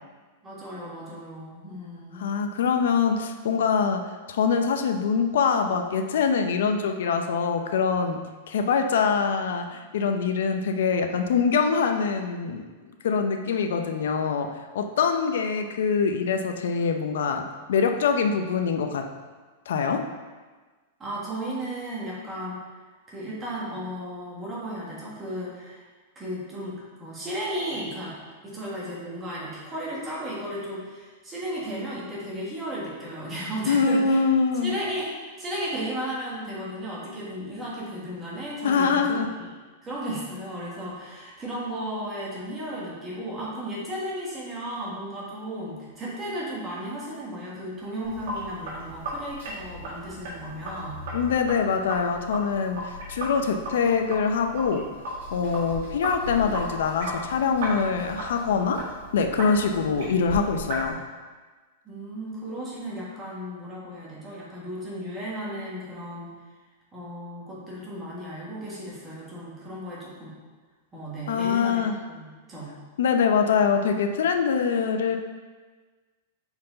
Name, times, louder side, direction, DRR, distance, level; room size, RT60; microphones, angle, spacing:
voice 1, 0.4-2.3 21.0-22.6 23.1-25.8 26.1-28.2 28.4-34.2 34.6-39.5 39.8-51.0 61.8-66.3 66.9-70.3 70.9-72.7, equal, 15° right, -6 dB, 1.5 m, -35 dB
voice 2, 2.1-4.0 4.3-12.6 13.0-19.1 19.7-20.0 33.7-34.7 38.6-39.3 51.1-54.8 55.3-58.8 59.1-61.0 71.3-72.0 73.0-75.2, left 5 dB, 75° left, 6 dB, 0.6 m, -24 dB
Sink (filling or washing), 48.0-60.9, equal, 60° right, 1.9 m, -36 dB
5.6 x 4.5 x 3.8 m, 1.4 s
supercardioid pair, 160°, 0 cm